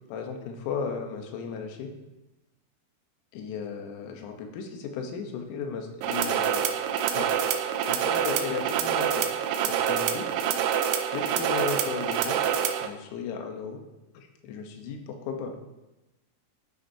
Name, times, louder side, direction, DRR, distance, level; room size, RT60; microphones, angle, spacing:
voice 1, 0.1-1.9 3.3-6.6 7.1-7.3 7.9-9.3 9.6-10.3 11.1-12.4 12.8-13.8 14.2-15.6, left 5 dB, 85° left, 4 dB, 3.8 m, -35 dB
sound 1, 6.0-12.9, right 9 dB, 85° right, 3.4 m, -26 dB
11.5 x 9.8 x 2.8 m, 1.0 s
omnidirectional pair, 6.0 m